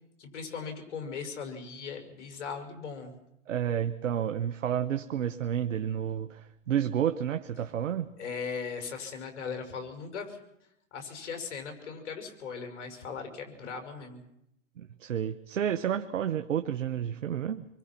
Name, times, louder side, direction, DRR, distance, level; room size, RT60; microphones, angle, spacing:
voice 1, 0.2-3.1 8.2-10.4 10.9-14.2, left 5 dB, 65° left, 5 dB, 6.1 m, -38 dB
voice 2, 3.5-8.1 14.8-17.7, right 9 dB, 80° right, 10 dB, 1.2 m, -30 dB
26.5 x 23.5 x 6.0 m, 0.80 s
hypercardioid pair, 130°, 37 cm